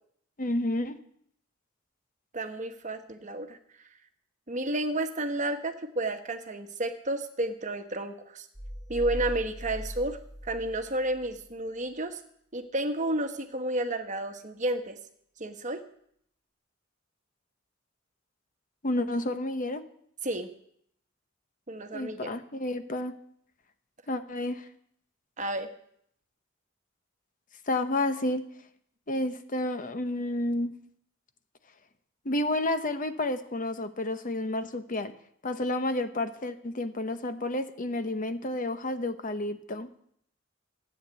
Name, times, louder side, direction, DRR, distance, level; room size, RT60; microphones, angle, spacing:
voice 1, 0.4-1.0 18.8-19.8 21.9-23.1 24.1-24.6 27.7-28.4 29.1-30.7 32.2-35.1 35.4-39.9, left 1 dB, 45° left, 10 dB, 0.9 m, -30 dB
voice 2, 2.3-3.6 4.5-8.5 8.9-10.2 10.4-12.2 12.5-15.0 15.4-15.8 20.2-20.5 21.7-22.3 25.4-25.7, right 1 dB, 40° right, 7 dB, 1.3 m, -31 dB
sound 1, 8.5-11.4, equal, 20° left, 1.8 m, -39 dB
13.5 x 8.9 x 8.2 m, 0.68 s
head